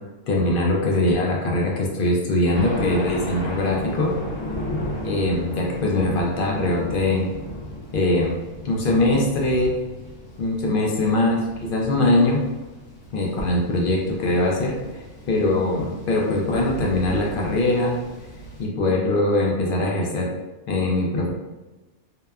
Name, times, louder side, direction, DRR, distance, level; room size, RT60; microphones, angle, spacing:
voice 1, 0.3-4.1 5.0-7.3 7.9-8.4 8.6-9.7 10.4-12.4 13.1-14.7 15.3-18.0 18.6-20.3 20.7-21.3, left 2 dB, 60° left, -2 dB, 0.6 m, -22 dB
Thunder, 2.5-18.7, left 1 dB, 85° left, 1.1 m, -35 dB
2.8 x 2.1 x 2.2 m, 1.1 s
omnidirectional pair, 1.3 m